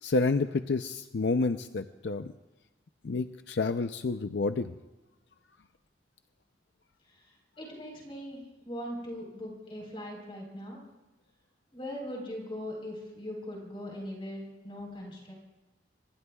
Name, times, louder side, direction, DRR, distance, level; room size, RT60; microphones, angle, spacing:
voice 1, 0.0-2.3 3.0-4.7, left 3 dB, 80° left, 9 dB, 0.5 m, -29 dB
voice 2, 7.0-10.8 11.7-15.3, equal, 30° left, -1 dB, 4.0 m, -40 dB
26.5 x 22.0 x 2.3 m, 1.1 s
head